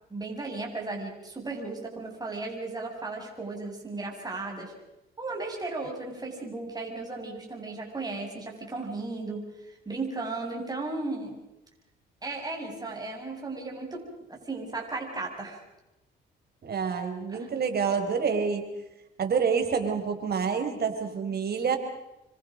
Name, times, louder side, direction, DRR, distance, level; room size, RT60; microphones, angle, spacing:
voice 1, 0.1-4.7 5.2-11.4 12.2-14.0 14.3-15.6 17.3-17.5, right 3 dB, 20° right, 0 dB, 7.2 m, -35 dB
voice 2, 16.6-18.6 19.2-21.8, right 6 dB, 55° right, 6 dB, 4.4 m, -27 dB
27.5 x 25.0 x 5.3 m, 0.93 s
cardioid pair, 90°, 20 cm